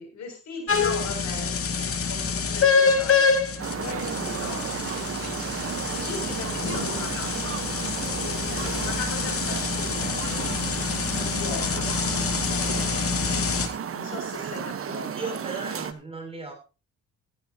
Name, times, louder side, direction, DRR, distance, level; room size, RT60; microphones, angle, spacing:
voice 1, 0.0-3.3 3.8-7.6 7.9-10.3 11.2-11.9 13.9-15.4, left 4 dB, 65° left, 3 dB, 7.1 m, -39 dB
sound 1, 0.7-13.7, left 5 dB, 50° left, 2.4 m, -26 dB
sound 2, 3.6-15.9, right 8 dB, 50° right, 1.2 m, -33 dB
sound 3, 7.6-13.2, left 2 dB, 30° left, 4.0 m, -47 dB
voice 2, 15.1-16.5, right 3 dB, 20° right, 2 dB, 7.1 m, -36 dB
15.5 x 14.5 x 2.9 m, 0.31 s
cardioid pair, 90°, 30 cm